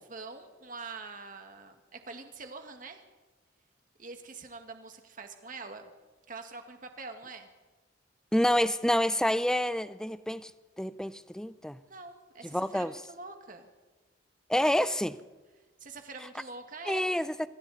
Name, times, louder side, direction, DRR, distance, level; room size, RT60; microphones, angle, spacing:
voice 1, 0.1-3.0 4.0-5.9 6.3-7.5 11.8-13.7 15.8-17.2, right 3 dB, 45° right, 2.0 m, -45 dB
voice 2, 8.3-10.5 10.8-11.8 12.5-12.9 14.5-15.2 16.9-17.5, left 1 dB, 5° left, 0.6 m, -28 dB
27.0 x 23.5 x 4.3 m
head